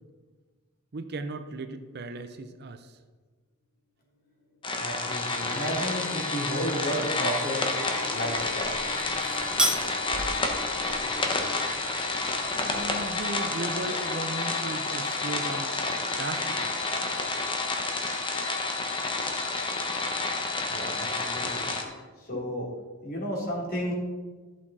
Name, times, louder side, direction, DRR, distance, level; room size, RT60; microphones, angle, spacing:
voice 1, 0.9-3.0 12.5-15.8 16.1-16.8, right 2 dB, 50° right, 9 dB, 0.7 m, -36 dB
Gong, 4.1-16.6 16.9-17.2, left 2 dB, 80° left, 3.4 m, -47 dB
sound 1, 4.6-21.8, left 3 dB, 25° left, 1.2 m, -30 dB
voice 2, 4.8-7.6 8.1-8.7 20.7-21.9 22.2-22.7 23.0-23.9, equal, 45° left, -3 dB, 3.2 m, -32 dB
sound 2, 8.3-13.3, right 1 dB, 5° right, 1.2 m, -35 dB
13.5 x 7.4 x 4.2 m, 1.4 s
head